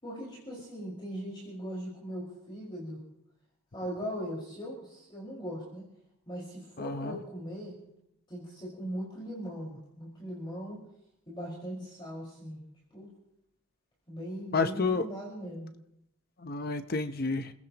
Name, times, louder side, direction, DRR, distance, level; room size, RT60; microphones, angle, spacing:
voice 1, 0.0-3.0 3.7-5.9 6.3-7.8 8.3-10.8 11.3-12.6 12.9-13.1 14.1-15.7, equal, 20° left, -4 dB, 5.0 m, -39 dB
voice 2, 6.8-7.2 14.5-15.0 16.4-17.5, left 4 dB, 45° left, 9 dB, 0.8 m, -30 dB
30.0 x 16.0 x 3.0 m, 0.78 s
head